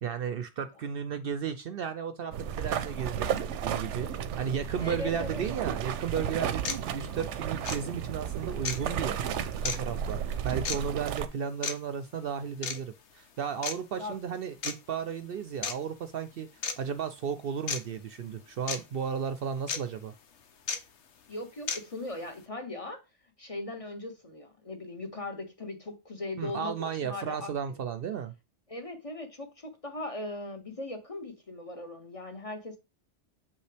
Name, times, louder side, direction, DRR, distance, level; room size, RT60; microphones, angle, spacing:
voice 1, 0.0-4.1 4.4-16.5 16.8-20.1 26.4-28.3, right 7 dB, 60° right, 0.7 m, -34 dB
sound 1, 2.3-11.3, right 8 dB, 90° right, 0.9 m, -33 dB
voice 2, 4.8-5.4 14.0-14.2 21.3-23.0 23.4-27.8 28.7-32.8, left 2 dB, 30° left, 1.0 m, -39 dB
sound 2, 5.9-6.0 6.6-6.8 7.6-7.8 8.6-8.8 9.6-9.8 10.6-10.8 11.6-11.7 12.6-12.8 13.6-13.7 14.6-14.7 15.6-15.8 16.6-16.8 17.7-17.8 18.7-18.8 19.7-19.8 20.7-20.8 21.7-21.8, left 6 dB, 75° left, 1.1 m, -32 dB
7.0 x 5.4 x 3.4 m
omnidirectional pair, 1.2 m